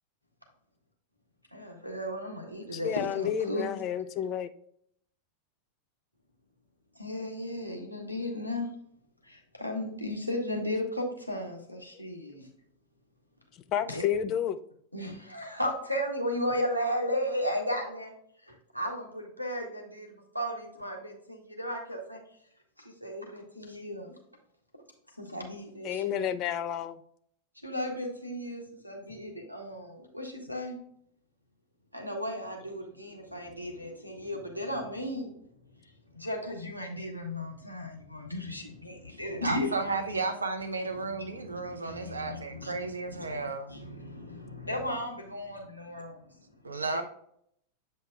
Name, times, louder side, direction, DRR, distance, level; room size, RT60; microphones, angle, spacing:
voice 1, 1.5-3.7 6.9-8.7 9.2-12.5 13.9-14.0 14.9-18.1 18.4-22.2 22.8-24.2 25.2-26.2 27.6-30.8 31.9-35.3 35.8-40.0 41.0-46.4 46.7-47.0, left 1 dB, 90° left, 1.3 m, -35 dB
voice 2, 2.7-4.5 13.7-14.6 25.8-27.0, left 9 dB, 35° left, 0.4 m, -30 dB
voice 3, 39.1-43.7 46.6-47.0, right 3 dB, 75° right, 0.7 m, -33 dB
7.9 x 5.5 x 2.4 m
figure-of-eight pair, 90°, 0 cm